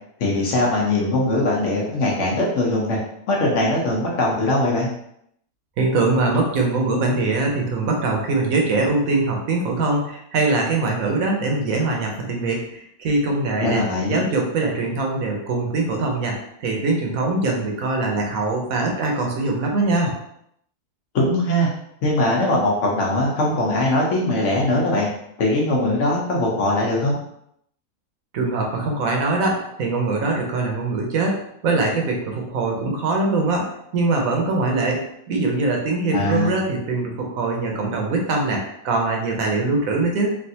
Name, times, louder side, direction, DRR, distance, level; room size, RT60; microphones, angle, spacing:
voice 1, 0.2-3.0 3.3-4.9 13.6-14.2 21.1-21.7 22.0-25.1 25.4-27.2 36.1-36.6, left 1 dB, 60° left, -3 dB, 1.0 m, -21 dB
voice 2, 5.8-13.8 14.1-20.1 28.3-33.7 33.9-40.3, right 3 dB, 70° right, 1 dB, 1.1 m, -22 dB
3.3 x 2.5 x 2.7 m, 0.73 s
omnidirectional pair, 1.6 m